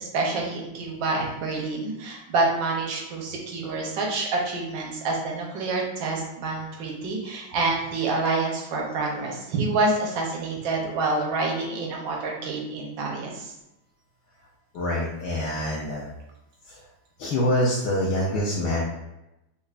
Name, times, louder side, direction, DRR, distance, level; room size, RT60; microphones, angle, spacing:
voice 1, 0.0-13.5, right 3 dB, 70° right, -1 dB, 1.2 m, -27 dB
voice 2, 14.7-16.1 16.7-16.8 17.2-18.8, left 1 dB, 75° left, -4 dB, 1.0 m, -25 dB
5.4 x 2.1 x 2.4 m, 0.91 s
omnidirectional pair, 2.3 m